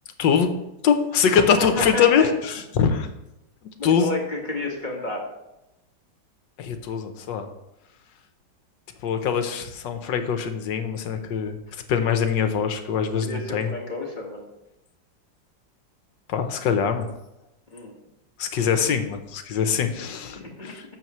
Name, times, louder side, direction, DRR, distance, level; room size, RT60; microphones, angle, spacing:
voice 1, 0.2-0.5 0.8-3.1 3.8-4.1 6.6-7.5 9.0-11.6 11.9-13.7 16.3-17.1 18.4-20.8, left 7 dB, 75° left, 7 dB, 1.5 m, -23 dB
voice 2, 1.6-2.3 3.8-5.2 13.2-14.4 17.7-17.9 20.4-20.7, left 2 dB, 25° left, -2 dB, 1.8 m, -30 dB
12.0 x 7.2 x 3.1 m, 0.91 s
omnidirectional pair, 2.0 m